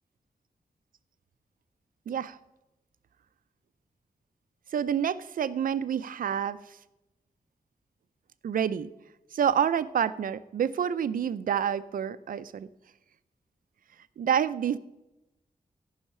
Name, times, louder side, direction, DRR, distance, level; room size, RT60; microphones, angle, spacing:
voice 1, 2.1-2.4 4.7-6.8 8.4-8.9 9.3-12.7 14.2-14.8, right 8 dB, 80° right, 14 dB, 0.5 m, -28 dB
13.5 x 5.7 x 5.5 m, 0.94 s
wide cardioid pair, 115°, 14 cm